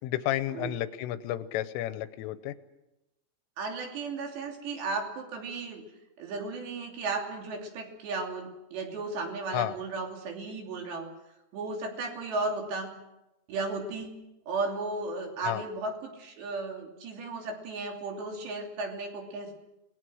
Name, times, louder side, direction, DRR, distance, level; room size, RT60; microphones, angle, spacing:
voice 1, 0.0-2.5 9.5-9.7 15.4-15.6, left 13 dB, 80° left, 12 dB, 3.3 m, -31 dB
voice 2, 3.6-5.8 6.2-11.1 11.5-12.9 13.5-14.2 14.5-19.5, right 3 dB, 60° right, 2 dB, 4.9 m, -35 dB
27.5 x 20.0 x 6.3 m, 0.92 s
omnidirectional pair, 6.0 m